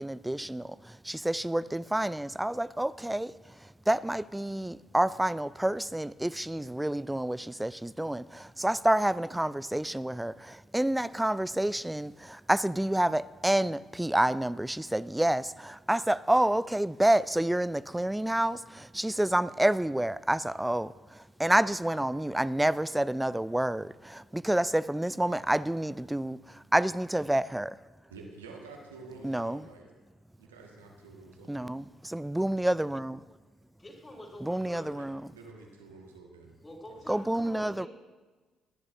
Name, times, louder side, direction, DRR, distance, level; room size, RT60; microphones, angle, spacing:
voice 1, 0.0-3.3 3.9-27.8 29.2-29.6 31.5-33.2 34.4-35.2 37.1-37.9, right 1 dB, 10° right, 0.3 m, -28 dB
voice 2, 28.1-29.9 30.4-31.7 34.6-36.6 36.9-37.0, right 3 dB, 85° right, 1.4 m, -49 dB
voice 3, 33.8-34.9 36.6-37.9, left 1 dB, 25° left, 4.0 m, -47 dB
21.5 x 10.5 x 2.5 m
hypercardioid pair, 45°, 0 cm